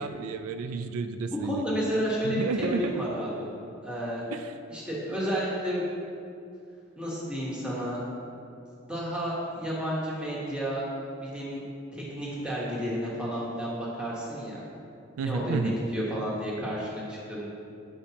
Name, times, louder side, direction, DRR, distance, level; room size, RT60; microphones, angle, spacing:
voice 1, 0.0-1.6 2.2-3.0 4.3-4.5 15.2-15.7, right 4 dB, 85° right, 8 dB, 0.3 m, -31 dB
voice 2, 1.3-3.5 3.8-4.3 4.7-5.8 7.0-8.0 8.9-10.8 11.2-11.6 11.9-14.6 15.2-17.5, equal, 5° right, -7 dB, 1.2 m, -31 dB
8.2 x 5.0 x 2.8 m, 2.5 s
head